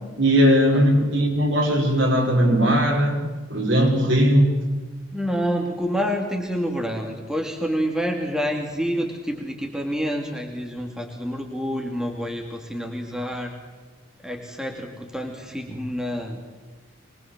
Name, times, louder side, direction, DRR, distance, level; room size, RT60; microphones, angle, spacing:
voice 1, 0.2-3.2 3.5-4.6, equal, 65° right, 1 dB, 5.6 m, -19 dB
voice 2, 5.1-13.5 14.2-16.4, equal, 5° right, 1 dB, 2.5 m, -28 dB
24.5 x 21.5 x 7.5 m, 1.4 s
head